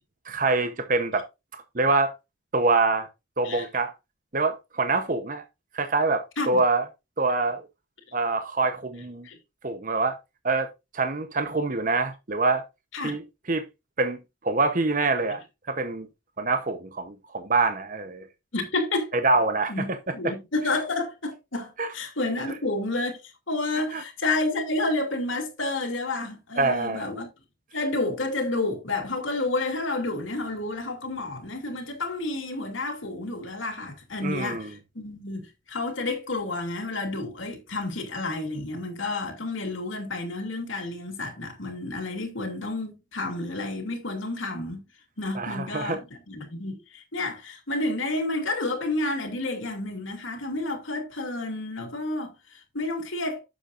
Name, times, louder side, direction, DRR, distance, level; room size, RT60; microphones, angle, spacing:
voice 1, 0.2-1.2 1.5-2.1 2.5-3.1 3.4-3.9 4.3-5.4 5.7-6.9 7.2-7.7 8.1-9.3 9.6-10.2 10.4-12.6 13.0-13.2 13.5-13.6 14.0-14.2 14.4-15.4 15.7-16.1 16.4-18.3 19.2-19.7 21.8-21.9 23.9-24.0 26.6-27.1 34.2-34.7 45.3-46.0, right 3 dB, 40° right, 0.9 m, -25 dB
voice 2, 18.5-19.2 19.7-19.9 20.1-27.3 27.7-44.8 45.2-53.4, left 2 dB, 80° left, 2.8 m, -30 dB
10.0 x 7.4 x 2.5 m
head